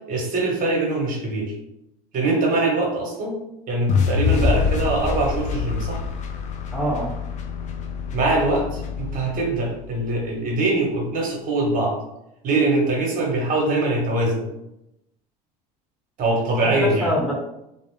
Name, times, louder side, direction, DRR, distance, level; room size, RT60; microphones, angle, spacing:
voice 1, 0.1-1.5 2.1-3.4 3.7-6.0 8.1-11.9 12.4-14.5 16.2-17.1, right 2 dB, 40° right, -1 dB, 1.0 m, -23 dB
sound 1, 3.9-10.1, left 6 dB, 35° left, 0.4 m, -25 dB
voice 2, 6.7-7.1 16.6-17.3, right 1 dB, 5° left, -5 dB, 1.1 m, -25 dB
2.4 x 2.0 x 3.1 m, 0.86 s
hypercardioid pair, 75°, 21 cm